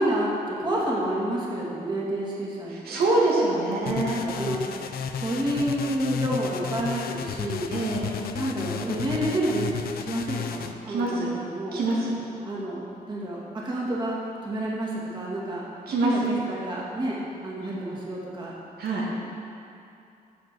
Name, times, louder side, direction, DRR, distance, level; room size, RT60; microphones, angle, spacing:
voice 1, 0.0-3.0 4.2-4.8 5.2-7.8 8.3-11.8 12.4-15.6 16.0-18.5, right 1 dB, 30° right, -6 dB, 2.5 m, -29 dB
voice 2, 2.8-4.2 7.7-8.2 10.9-11.3 11.7-12.1 15.9-16.1 18.8-19.1, right 2 dB, 80° right, -4 dB, 2.1 m, -25 dB
sound 1, 3.9-10.7, left 7 dB, 80° left, 0.6 m, -33 dB
15.0 x 5.1 x 6.2 m, 2.6 s
cardioid pair, 115°, 16 cm